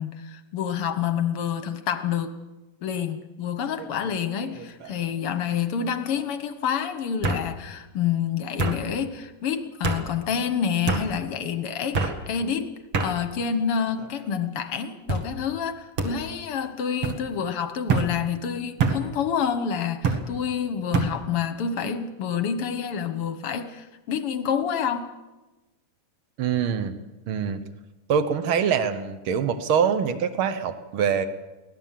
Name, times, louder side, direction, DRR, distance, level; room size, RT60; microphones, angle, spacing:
voice 1, 0.0-2.3 2.8-12.7 13.0-25.1, left 7 dB, 60° left, 9 dB, 1.5 m, -28 dB
sound 1, 3.8-4.2 4.5-5.1 6.2-6.3 7.2-7.4 8.6-8.8 9.8-10.0 10.9-11.1 11.9-12.2 12.9-13.1 13.9-14.3 15.1-15.3 16.0-16.1 17.0-17.2 17.9-18.1 18.8-19.0 20.0-20.2 20.9-21.1, right 4 dB, 45° right, 2.5 m, -25 dB
voice 2, 26.4-27.0 27.3-27.6 28.1-31.2, right 7 dB, 80° right, 10 dB, 1.1 m, -24 dB
24.0 x 18.0 x 7.5 m, 1.1 s
omnidirectional pair, 3.9 m